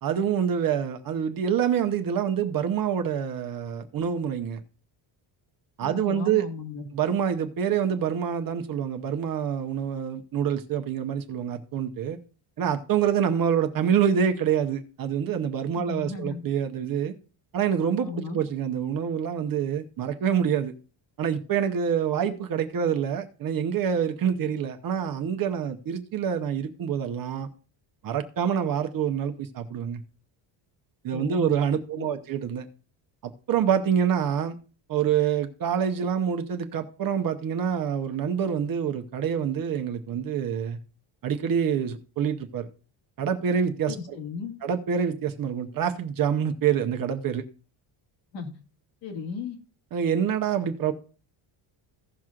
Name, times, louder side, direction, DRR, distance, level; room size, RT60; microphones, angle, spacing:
voice 1, 0.0-4.6 5.8-6.5 6.9-12.2 12.6-17.1 17.5-20.7 21.2-27.5 28.0-30.0 31.0-32.7 33.2-34.6 34.9-40.8 41.2-42.7 43.2-44.2 44.6-47.4 49.9-50.9, right 8 dB, 45° right, 0.9 m, -26 dB
voice 2, 5.8-6.9 15.7-16.4 18.0-18.4 31.1-31.5 31.9-32.2 43.9-44.5 48.3-48.5 49.0-49.6, left 5 dB, 60° left, 2.0 m, -36 dB
16.5 x 6.1 x 2.4 m
cardioid pair, 175°, 49 cm